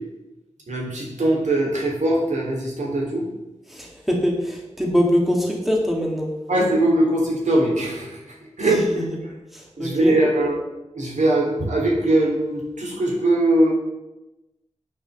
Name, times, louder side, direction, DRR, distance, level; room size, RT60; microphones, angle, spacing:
voice 1, 0.7-3.3 6.5-8.2 8.6-9.1 9.8-10.6 10.9-13.7, right 1 dB, 80° right, -3 dB, 3.5 m, -21 dB
voice 2, 3.7-6.3 8.7-9.0 9.5-10.2, equal, ahead, -1 dB, 2.2 m, -23 dB
9.0 x 6.4 x 7.1 m, 1.0 s
wide cardioid pair, 85°, 12 cm